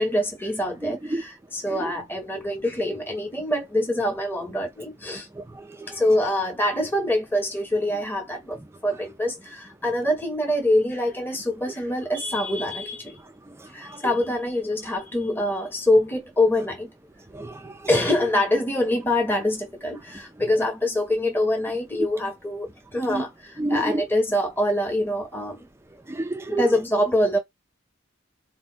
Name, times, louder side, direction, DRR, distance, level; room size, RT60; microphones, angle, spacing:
voice 1, 0.0-5.3 5.9-13.2 13.7-16.9 17.9-25.7 26.5-27.4, left 1 dB, 10° left, 1.0 m, -25 dB
voice 2, 5.4-6.0 13.8-14.0 17.3-17.7 23.1-23.2 23.6-24.0 26.1-26.7, right 2 dB, 15° right, 0.5 m, -29 dB
3.9 x 2.2 x 4.4 m
head